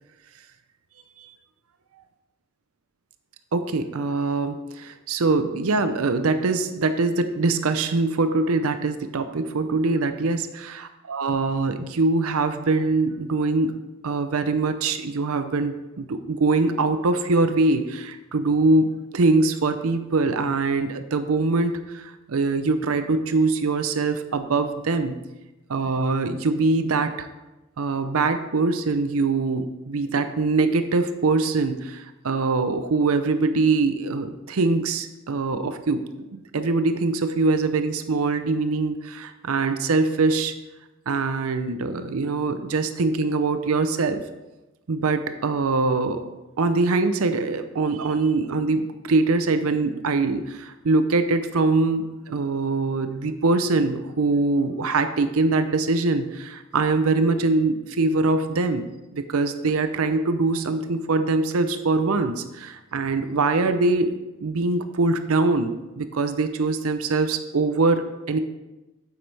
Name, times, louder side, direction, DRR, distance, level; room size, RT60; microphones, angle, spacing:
voice 1, 3.5-13.8 14.0-25.2 25.7-27.3 27.8-36.0 36.3-40.5 41.1-44.2 44.9-46.2 46.6-58.8 59.1-64.1 64.4-68.4, right 3 dB, 70° right, 9 dB, 0.6 m, -23 dB
9.3 x 7.8 x 3.4 m, 1.1 s
head